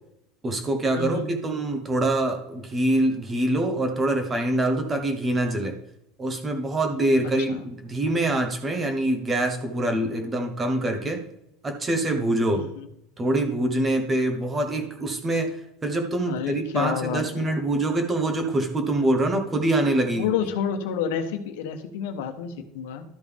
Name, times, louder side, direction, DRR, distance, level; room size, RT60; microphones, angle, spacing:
voice 1, 0.4-5.7 6.2-11.2 11.6-12.7 13.2-20.3, right 1 dB, 15° right, 6 dB, 1.0 m, -25 dB
voice 2, 1.0-1.3 7.5-7.6 12.5-12.9 16.3-17.5 20.2-23.0, left 8 dB, 90° left, 7 dB, 1.1 m, -29 dB
12.5 x 5.3 x 3.4 m, 0.81 s
cardioid pair, 180°, 0 cm